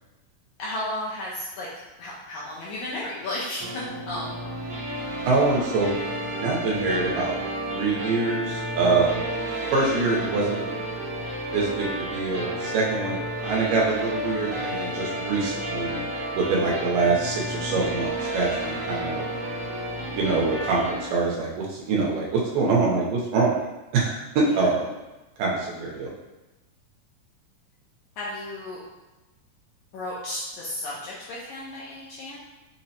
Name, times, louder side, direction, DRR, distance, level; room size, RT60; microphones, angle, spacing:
voice 1, 0.6-1.7 2.0-4.4 24.5-24.7 28.2-28.8 29.9-32.4, left 1 dB, 80° left, -6 dB, 1.7 m, -33 dB
sound 1, 3.6-21.1, right 1 dB, 50° right, 1.2 m, -31 dB
voice 2, 5.3-6.0 6.4-7.4 7.7-9.2 9.7-10.6 11.5-16.0 16.3-19.3 20.2-20.8 21.1-23.5 23.9-24.9 25.4-26.1, right 3 dB, 85° right, -3 dB, 2.3 m, -24 dB
6.0 x 2.0 x 2.8 m, 1.1 s
omnidirectional pair, 4.0 m